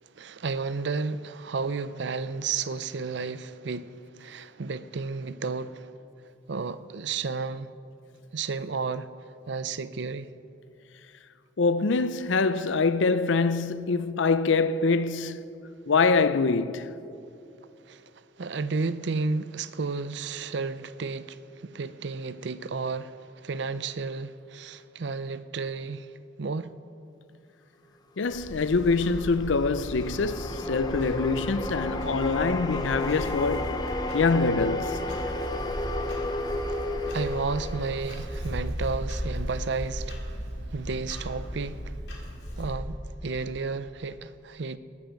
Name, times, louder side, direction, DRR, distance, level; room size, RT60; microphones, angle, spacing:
voice 1, 0.0-5.9 6.5-7.7 8.3-9.1 9.5-10.3 17.9-18.1 18.4-26.1 26.4-26.7 36.7-42.0 42.6-44.8, right 4 dB, 65° right, 0.5 m, -32 dB
voice 2, 11.6-15.4 15.9-16.9 28.2-33.8 34.1-35.0, left 4 dB, 75° left, 0.5 m, -24 dB
Clock, 28.3-42.7, equal, 55° left, 3.4 m, -36 dB
sound 1, 28.5-38.9, left 1 dB, 20° left, 0.8 m, -33 dB
20.0 x 12.0 x 5.2 m
head